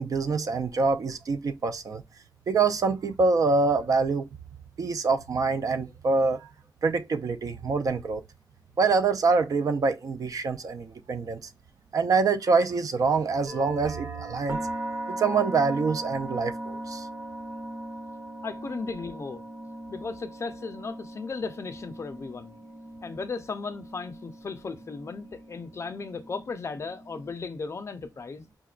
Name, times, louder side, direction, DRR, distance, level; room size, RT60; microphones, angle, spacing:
voice 1, 0.0-2.0 2.5-4.3 4.8-6.5 6.8-8.2 8.8-11.5 11.9-14.6 15.1-17.1, right 4 dB, 50° right, 0.4 m, -25 dB
sound 1, 13.5-27.3, right 1 dB, 25° right, 0.8 m, -39 dB
voice 2, 18.4-19.4 19.9-22.6 23.0-28.5, left 4 dB, 40° left, 0.4 m, -36 dB
4.6 x 2.2 x 2.3 m
wide cardioid pair, 120°, 7 cm